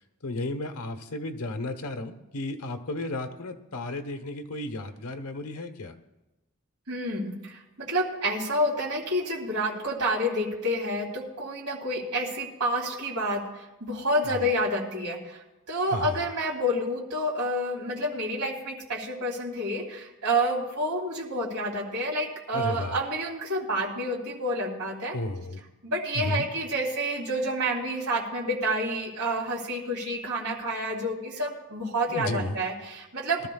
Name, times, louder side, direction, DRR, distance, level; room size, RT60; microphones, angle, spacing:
voice 1, 0.2-5.9 14.2-14.4 15.9-16.2 22.5-23.0 25.1-25.6 26.1-26.5 32.1-32.6, left 2 dB, 80° left, 6 dB, 1.1 m, -33 dB
voice 2, 6.9-13.4 13.8-25.2 25.8-33.5, equal, 90° right, -2 dB, 3.1 m, -29 dB
22.0 x 13.0 x 2.3 m, 1.0 s
head